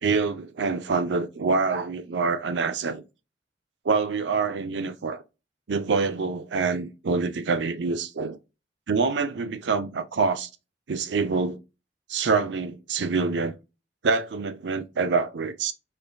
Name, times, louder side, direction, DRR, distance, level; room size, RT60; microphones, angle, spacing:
voice 1, 0.0-3.0 3.8-5.2 5.7-8.4 8.9-10.5 10.9-11.6 12.1-13.5 14.0-15.7, right 4 dB, 80° right, 0.6 m, -26 dB
5.3 x 2.3 x 2.5 m
head